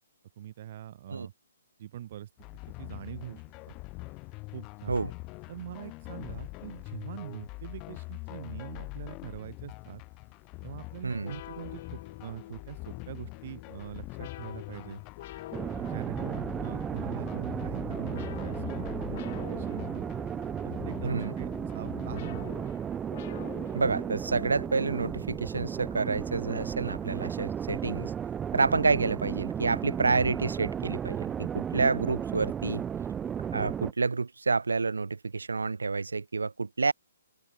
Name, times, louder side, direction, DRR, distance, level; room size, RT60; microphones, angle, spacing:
voice 1, 0.4-1.3 1.8-2.3 2.8-3.7 4.5-5.0 5.5-10.0 10.6-15.0 15.8-20.1 20.6-22.5, right 12 dB, 45° right, 5.2 m, -43 dB
sound 1, 2.4-22.2, left 26 dB, 25° left, 4.9 m, -43 dB
voice 2, 11.0-11.4 21.0-21.3 23.7-28.1 28.5-32.8 33.5-36.9, right 4 dB, 85° right, 0.7 m, -29 dB
sound 2, 11.2-27.4, left 14 dB, 40° left, 4.5 m, -48 dB
sound 3, 15.5-33.9, right 8 dB, 15° right, 0.6 m, -34 dB
hypercardioid pair, 140°, 0 cm